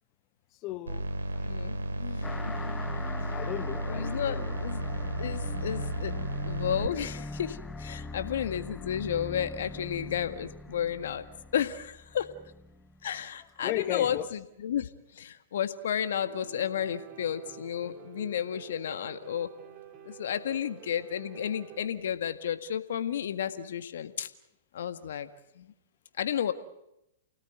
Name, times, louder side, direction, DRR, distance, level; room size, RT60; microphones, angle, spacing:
voice 1, 0.6-1.5 3.3-4.6 13.6-14.3, left 16 dB, 35° left, 1.1 m, -36 dB
sound 1, 0.9-6.9, right 1 dB, 90° right, 3.0 m, -33 dB
voice 2, 1.4-2.3 3.9-6.2 6.5-11.3 11.5-12.3 13.0-19.5 20.1-24.3 24.7-25.3 25.6-25.7 26.2-26.5, left 9 dB, 70° left, 1.8 m, -32 dB
sound 2, 2.2-13.2, left 2 dB, 10° left, 1.0 m, -42 dB
Piano, 16.2-21.9, right 11 dB, 35° right, 3.4 m, -49 dB
29.5 x 18.0 x 9.3 m
hypercardioid pair, 120°, 0 cm